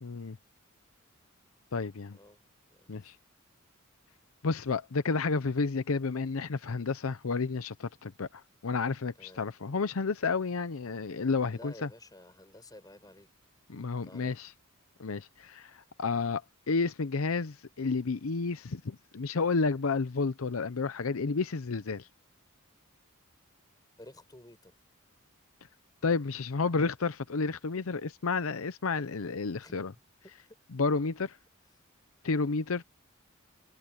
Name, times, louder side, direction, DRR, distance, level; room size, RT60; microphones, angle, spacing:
voice 1, 0.0-0.4 1.7-2.2 2.9-3.2 4.4-11.9 13.7-14.5 15.0-16.4 16.7-22.1 26.0-29.9 30.7-31.4 32.2-32.8, left 4 dB, 80° left, 0.7 m, -31 dB
voice 2, 2.7-3.1 9.2-9.4 11.5-13.3 14.0-14.4 24.0-24.7 29.6-29.8 30.5-30.6, left 1 dB, 20° left, 5.3 m, -52 dB
head